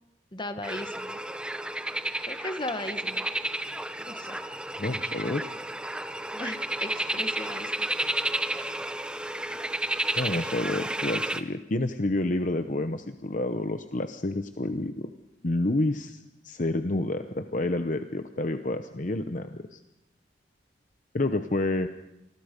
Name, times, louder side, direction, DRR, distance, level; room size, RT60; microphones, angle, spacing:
voice 1, 0.3-1.2 2.3-3.3 4.1-4.4 6.3-7.9, left 1 dB, 25° left, 9 dB, 1.3 m, -37 dB
sound 1, 0.6-11.4, right 1 dB, 5° right, 0.8 m, -32 dB
voice 2, 4.8-5.5 10.2-15.1 15.4-19.8 21.1-21.9, left 2 dB, 45° left, 8 dB, 0.9 m, -29 dB
27.5 x 21.0 x 5.3 m, 0.92 s
head